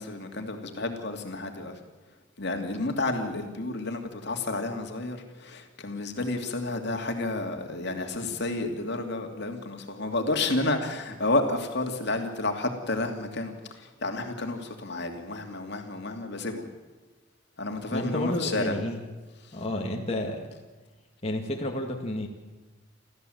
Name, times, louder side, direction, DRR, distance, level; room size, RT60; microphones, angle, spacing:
voice 1, 0.0-1.8 2.4-16.7 17.6-18.7 19.4-19.6, left 2 dB, 60° left, 4 dB, 2.7 m, -31 dB
voice 2, 17.9-19.0 19.5-20.5 21.2-22.3, left 1 dB, 30° left, 0 dB, 2.2 m, -31 dB
29.0 x 14.0 x 7.9 m, 1.2 s
head